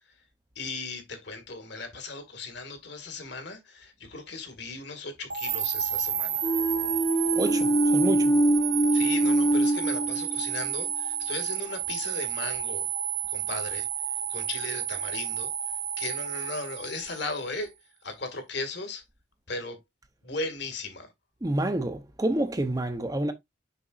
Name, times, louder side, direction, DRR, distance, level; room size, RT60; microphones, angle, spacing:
voice 1, 0.6-6.5 8.9-12.9 13.3-13.9 14.3-15.5 16.0-17.7 18.0-19.0 19.5-19.8 20.2-21.1, left 3 dB, 55° left, 1.9 m, -37 dB
sound 1, 5.3-17.5, right 9 dB, 60° right, 1.2 m, -31 dB
sound 2, 6.4-10.7, right 1 dB, 20° left, 0.7 m, -24 dB
voice 2, 7.3-8.4 21.4-23.3, right 1 dB, 20° right, 0.7 m, -28 dB
6.8 x 5.9 x 2.5 m
head